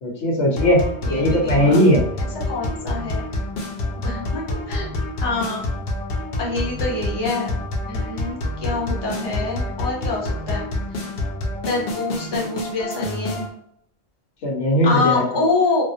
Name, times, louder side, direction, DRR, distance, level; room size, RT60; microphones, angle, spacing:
voice 1, 0.0-0.8 1.1-2.0 14.4-15.2, equal, 80° left, 0 dB, 1.1 m, -18 dB
sound 1, 0.6-13.5, left 1 dB, 65° left, 0.8 m, -27 dB
voice 2, 1.0-1.9 2.2-3.2 4.0-4.9 5.2-5.6 6.4-7.5 7.9-10.6 11.6-13.4 14.8-15.8, left 3 dB, 30° left, -2 dB, 0.6 m, -26 dB
2.4 x 2.1 x 2.6 m, 0.72 s
omnidirectional pair, 1.2 m